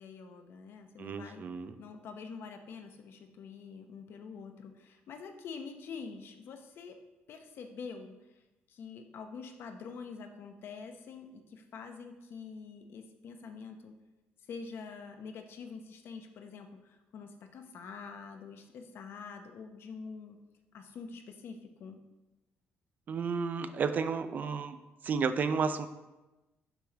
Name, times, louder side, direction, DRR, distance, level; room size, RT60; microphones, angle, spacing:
voice 1, 0.0-1.4 1.8-7.0 7.3-8.2 8.7-13.9 14.5-16.8 17.1-20.4 20.7-22.0, left 5 dB, 60° left, 6 dB, 0.7 m, -46 dB
voice 2, 1.0-1.8 23.1-24.8 25.0-25.9, right 5 dB, 45° right, 11 dB, 0.4 m, -32 dB
6.7 x 3.2 x 5.8 m, 1.0 s
cardioid pair, 120°, 4 cm